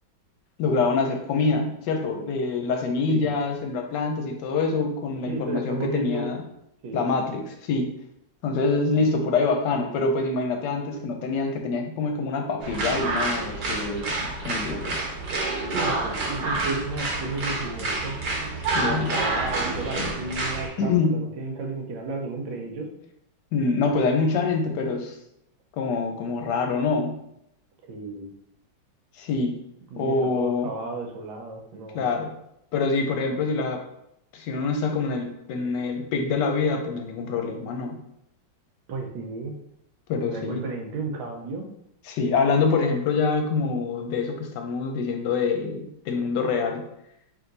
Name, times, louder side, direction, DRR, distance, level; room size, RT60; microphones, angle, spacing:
voice 1, 0.6-6.4 6.9-7.9 8.4-15.0 18.7-19.2 19.8-20.2 20.8-21.3 23.5-25.1 25.8-27.2 29.2-29.6 30.0-30.7 31.9-32.4 32.7-33.8 34.3-38.0 40.1-40.6 42.0-46.9, left 4 dB, 70° left, 4 dB, 1.1 m, -25 dB
voice 2, 5.2-6.3 6.8-7.0 15.7-18.2 18.8-22.9 27.9-28.3 29.9-32.1 38.9-39.5 40.3-41.7, right 3 dB, 80° right, 3 dB, 1.4 m, -33 dB
sound 1, 12.6-20.7, right 2 dB, 65° right, 1.5 m, -28 dB
3.7 x 2.9 x 3.8 m, 0.78 s
omnidirectional pair, 2.1 m